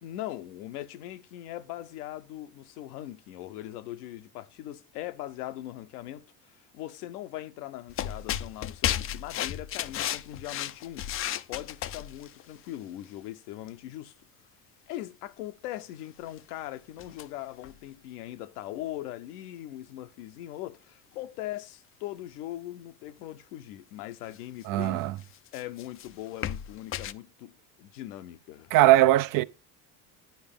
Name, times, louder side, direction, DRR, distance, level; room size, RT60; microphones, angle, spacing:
voice 1, 0.0-11.1 11.5-14.1 14.9-25.0 25.5-28.7, left 14 dB, 80° left, 0.8 m, -40 dB
sound 1, 7.9-12.4 13.7-13.8 16.3-16.4 17.0-17.3 17.6-17.8 24.3-24.4 25.2-27.1, left 11 dB, 30° left, 0.4 m, -33 dB
voice 2, 24.7-25.2 28.7-29.4, right 15 dB, 50° right, 0.5 m, -20 dB
10.5 x 4.8 x 3.5 m
hypercardioid pair, 80°, 46 cm